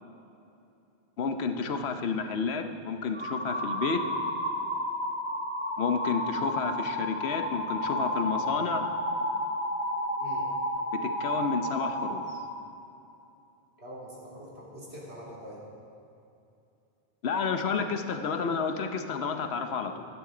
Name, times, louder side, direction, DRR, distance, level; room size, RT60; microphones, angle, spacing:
voice 1, 1.2-4.1 5.8-8.8 10.9-12.2 17.2-20.1, left 5 dB, 80° left, 7 dB, 1.1 m, -30 dB
sound 1, 3.1-12.5, equal, 10° right, 1.4 m, -31 dB
voice 2, 13.8-15.6, equal, 85° right, -6 dB, 3.2 m, -44 dB
16.0 x 11.5 x 3.8 m, 2.7 s
omnidirectional pair, 1.1 m